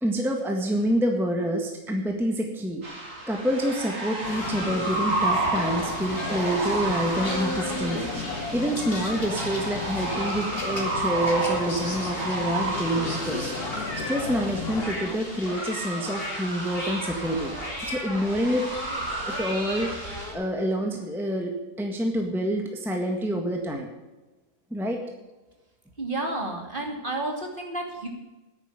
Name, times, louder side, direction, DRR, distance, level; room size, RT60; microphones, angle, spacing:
voice 1, 0.0-2.8 3.3-17.5 17.8-18.7 19.3-23.9 24.7-25.0, equal, ahead, 2 dB, 1.6 m, -27 dB
sound 1, 2.8-20.3, right 2 dB, 55° right, 4.0 m, -32 dB
sound 2, 4.2-14.9, left 4 dB, 75° left, 2.1 m, -35 dB
sound 3, 5.5-20.3, left 1 dB, 35° left, 3.7 m, -37 dB
voice 2, 26.0-28.1, right 2 dB, 30° right, 1 dB, 2.8 m, -31 dB
10.5 x 9.6 x 9.6 m, 1.1 s
omnidirectional pair, 1.7 m